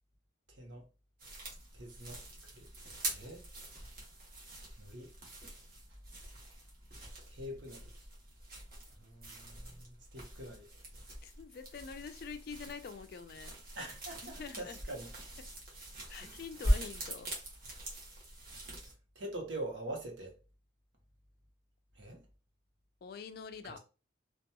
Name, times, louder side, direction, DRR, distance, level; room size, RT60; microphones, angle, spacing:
sound 1, 1.2-18.9, right 1 dB, 50° right, 1.0 m, -41 dB
voice 1, 1.7-2.2 2.5-2.7 3.1-3.4 4.8-5.1 7.3-7.9 9.0-9.6 10.1-10.6 13.7-15.1 16.2-16.3 19.2-20.3 22.0-22.2 23.6-23.8, right 1 dB, 80° right, 0.9 m, -44 dB
voice 2, 11.2-13.6 14.2-14.8 16.1-17.3 23.0-23.8, left 5 dB, 55° left, 0.3 m, -46 dB
2.8 x 2.3 x 2.2 m
head